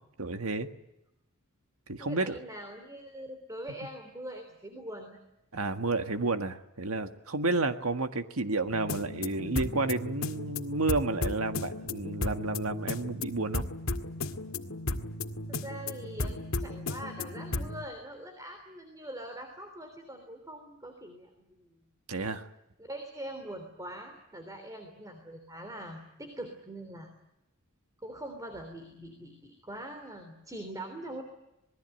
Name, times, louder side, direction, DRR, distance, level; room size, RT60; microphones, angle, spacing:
voice 1, 0.2-0.7 1.9-2.4 5.5-13.6 22.1-22.5, right 3 dB, 75° right, 8 dB, 1.6 m, -31 dB
voice 2, 2.0-5.2 15.5-21.8 22.8-27.1 28.0-31.2, right 1 dB, 15° right, 5 dB, 3.3 m, -43 dB
sound 1, 8.7-17.8, left 2 dB, 70° left, 2.0 m, -35 dB
27.0 x 20.5 x 9.1 m, 0.90 s
head